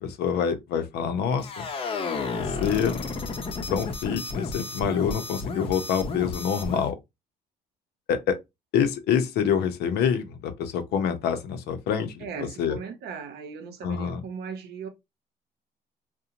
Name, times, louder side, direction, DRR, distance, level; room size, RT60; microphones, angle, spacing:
voice 1, 0.0-1.6 2.4-3.0 3.7-7.0 8.1-8.4 8.7-12.8 13.8-14.2, left 7 dB, 75° left, 0.6 m, -26 dB
sound 1, 1.4-6.9, left 4 dB, 35° left, 0.6 m, -32 dB
voice 2, 12.2-14.9, right 6 dB, 75° right, 0.7 m, -38 dB
2.8 x 2.1 x 2.5 m
cardioid pair, 110°, 17 cm